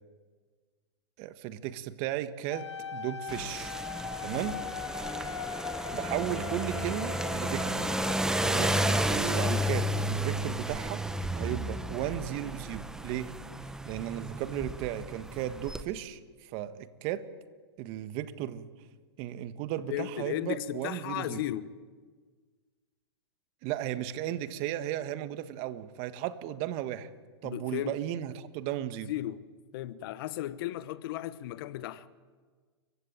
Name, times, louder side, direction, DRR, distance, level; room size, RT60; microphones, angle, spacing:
voice 1, 1.2-3.7 4.2-4.6 5.9-7.7 8.4-11.0 11.3-13.4 13.8-17.3 17.8-18.7 19.2-21.4 23.6-27.1 27.4-29.1, right 12 dB, 40° right, 1.5 m, -35 dB
sound 1, 2.5-9.5, left 6 dB, 85° left, 1.5 m, -39 dB
sound 2, 3.3-15.8, right 1 dB, 5° right, 1.1 m, -32 dB
voice 2, 19.9-21.7 27.4-28.0 29.1-29.4 29.7-32.1, left 13 dB, 55° left, 1.1 m, -35 dB
29.5 x 15.5 x 8.9 m
hypercardioid pair, 120°, 14 cm